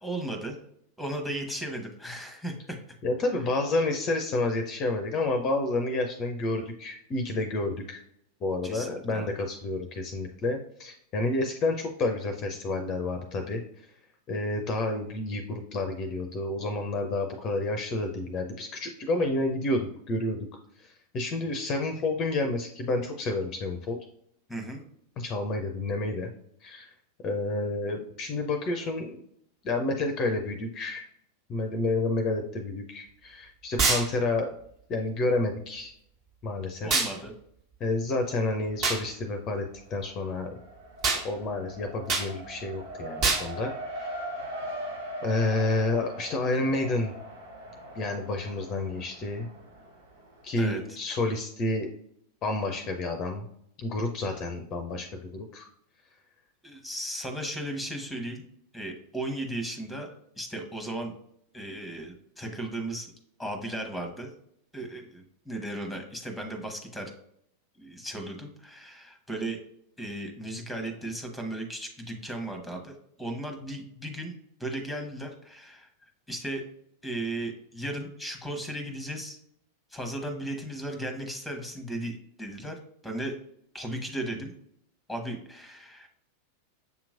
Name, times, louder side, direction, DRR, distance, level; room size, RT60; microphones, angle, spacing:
voice 1, 0.0-0.6 1.0-2.8 8.6-9.3 24.5-24.8 36.8-37.3 50.6-50.8 56.6-58.4 58.7-61.1 61.5-63.1 63.4-64.3 64.7-67.1 67.8-69.6 70.0-74.3 74.6-75.9 76.3-76.6 77.0-79.4 79.9-82.8 83.0-83.3 83.7-84.5 85.1-86.1, right 1 dB, ahead, 5 dB, 1.0 m, -36 dB
voice 2, 3.0-8.0 8.4-13.6 14.3-20.4 20.8-24.0 25.2-26.3 26.6-26.9 27.2-29.2 29.6-31.1 31.5-34.5 34.9-35.9 36.4-36.9 37.8-39.6 39.9-40.6 41.2-44.1 45.2-47.1 47.9-49.5 50.4-51.9 52.4-53.5 53.8-55.7, left 2 dB, 30° left, 5 dB, 0.5 m, -29 dB
sound 1, 33.8-34.1 36.9-37.1 38.8-39.0 41.0-41.2 42.1-42.3 43.2-43.5, right 4 dB, 40° right, 1.3 m, -24 dB
Race car auto racing, 38.5-39.1 39.4-50.8, right 1 dB, 70° right, 1.1 m, -41 dB
6.9 x 3.0 x 2.5 m, 0.71 s
figure-of-eight pair, 90°, 0 cm